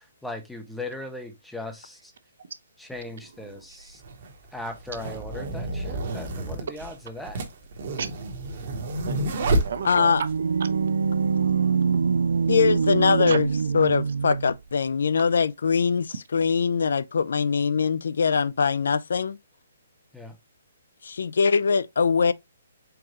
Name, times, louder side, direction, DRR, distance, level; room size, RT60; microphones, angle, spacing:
voice 1, 0.2-2.1 2.8-4.0 4.5-7.4 20.1-20.4, left 2 dB, ahead, 0.5 m, -38 dB
sound 1, 2.9-3.0 3.9-10.4, right 2 dB, 40° right, 1.1 m, -29 dB
voice 2, 3.2-3.9 5.0-5.3 6.7-6.8 8.0-8.3 8.8-10.3 10.6-10.8 11.2-12.6 13.3-13.4, right 6 dB, 60° right, 0.7 m, -36 dB
voice 3, 9.8-10.2 12.5-13.5 13.7-19.4 21.0-22.3, left 5 dB, 70° left, 0.4 m, -22 dB
sound 2, 9.8-14.6, right 5 dB, 85° right, 0.3 m, -24 dB
4.6 x 3.7 x 2.9 m
hypercardioid pair, 170°, 0 cm